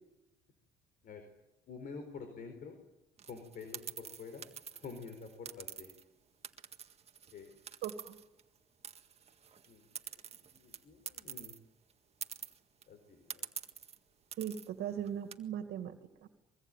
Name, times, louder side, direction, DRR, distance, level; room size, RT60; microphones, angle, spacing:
voice 1, 1.7-2.8 3.2-4.5 4.7-5.9 7.3-7.6 9.7-11.5 12.9-13.4, left 5 dB, 55° left, 7 dB, 4.6 m, -48 dB
sound 1, 3.2-6.0 6.4-8.6 8.8-11.6 11.9-12.0 12.2-12.8 13.3-14.0 14.3-14.7 15.1-15.3, right 7 dB, 40° right, 1.8 m, -46 dB
voice 2, 7.8-8.2 14.4-16.0 16.2-16.3, right 9 dB, 75° right, 8 dB, 2.3 m, -39 dB
23.5 x 23.5 x 9.2 m, 0.95 s
cardioid pair, 110°, 17 cm